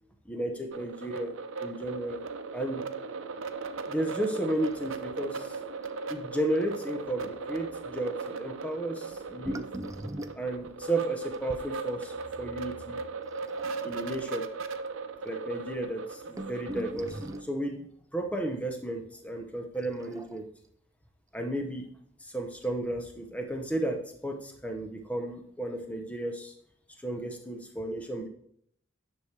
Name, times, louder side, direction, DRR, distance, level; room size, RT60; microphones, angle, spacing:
voice 1, 0.3-1.3 1.6-2.2 2.5-2.9 3.9-5.5 6.1-9.7 10.4-13.0 13.8-14.5 15.2-16.2 16.5-17.8 18.1-20.5 21.3-21.9 22.2-26.5 27.0-28.3, right 1 dB, 5° left, 4 dB, 0.9 m, -33 dB
sound 1, 0.7-17.4, right 4 dB, 80° right, 0.7 m, -38 dB
sound 2, 4.6-5.2 5.4-5.5 5.8-6.0 6.5-6.6 9.1-11.7 13.3-14.1 14.9-15.0 15.1-15.3 15.9-17.6 19.7-20.7 21.9-22.0 22.6-22.7, right 1 dB, 15° right, 0.4 m, -41 dB
10.0 x 6.2 x 3.4 m, 0.68 s
head